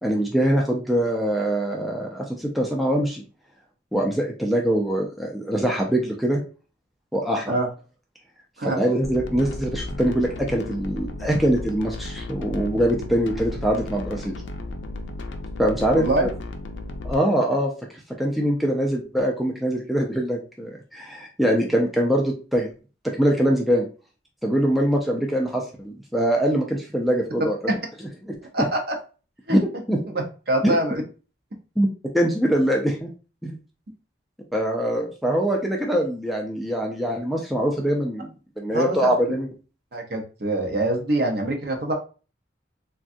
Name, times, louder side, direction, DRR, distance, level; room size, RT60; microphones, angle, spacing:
voice 1, 0.0-3.2 3.9-6.4 7.1-7.5 8.6-14.4 15.6-16.3 17.0-17.7 18.2-22.7 23.0-23.9 24.4-27.6 28.2-28.3 29.5-30.0 30.6-30.8 31.8-31.9 32.1-33.1 33.4-33.6 34.5-38.3 38.6-39.5, right 1 dB, ahead, -1 dB, 0.3 m, -23 dB
sound 1, 9.0-17.1, left 2 dB, 75° left, 0.4 m, -34 dB
voice 2, 15.9-16.3 28.5-29.0 29.5-29.6 30.1-31.0 38.7-39.1 39.9-41.9, right 1 dB, 55° right, 3 dB, 0.7 m, -24 dB
3.5 x 2.3 x 2.5 m, 0.36 s
head